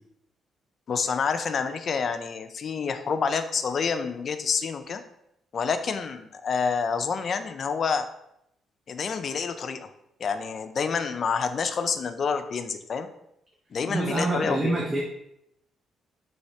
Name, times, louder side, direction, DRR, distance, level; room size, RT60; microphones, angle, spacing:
voice 1, 0.9-5.0 5.5-8.1 8.9-9.9 10.2-13.1 13.7-14.8, left 5 dB, 50° left, 9 dB, 0.3 m, -28 dB
voice 2, 13.9-15.0, right 2 dB, 30° right, -3 dB, 0.6 m, -26 dB
3.2 x 3.1 x 2.7 m, 0.78 s
cardioid pair, 90°, 0 cm